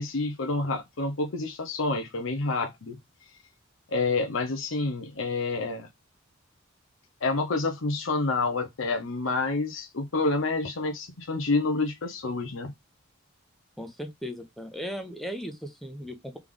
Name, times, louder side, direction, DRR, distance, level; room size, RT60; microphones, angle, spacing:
voice 1, 0.0-3.0 3.9-5.9 7.2-12.7, left 3 dB, 70° left, 0.8 m, -28 dB
voice 2, 13.8-16.4, equal, ahead, 0.8 m, -37 dB
3.5 x 3.4 x 3.6 m
head